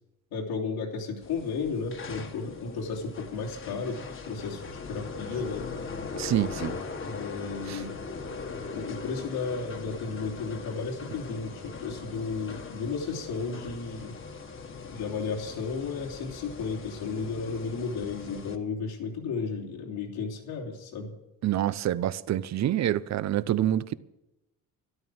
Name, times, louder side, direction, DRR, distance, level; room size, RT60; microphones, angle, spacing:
voice 1, 0.3-5.7 7.0-8.0 8.7-14.2 14.9-21.1, left 4 dB, 90° left, 3.0 m, -34 dB
sound 1, 1.2-18.5, left 4 dB, 35° left, 1.4 m, -40 dB
voice 2, 6.1-6.8 7.7-7.8 21.4-23.9, right 12 dB, 50° right, 0.7 m, -27 dB
13.0 x 13.0 x 6.3 m
cardioid pair, 135°, 36 cm